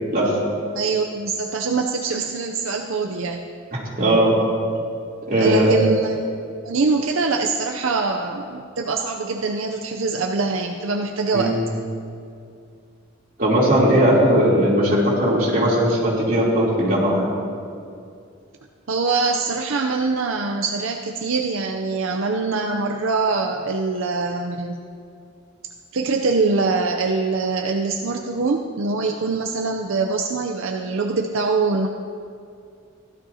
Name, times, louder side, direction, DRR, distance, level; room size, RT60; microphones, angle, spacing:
voice 1, 0.7-3.5 5.4-6.2 6.6-11.5 18.9-24.8 25.9-31.9, right 4 dB, 80° right, 2 dB, 0.6 m, -23 dB
voice 2, 3.7-4.4 5.3-5.7 11.3-11.6 13.4-17.3, right 1 dB, 45° right, -6 dB, 3.2 m, -18 dB
16.5 x 12.5 x 2.8 m, 2.4 s
head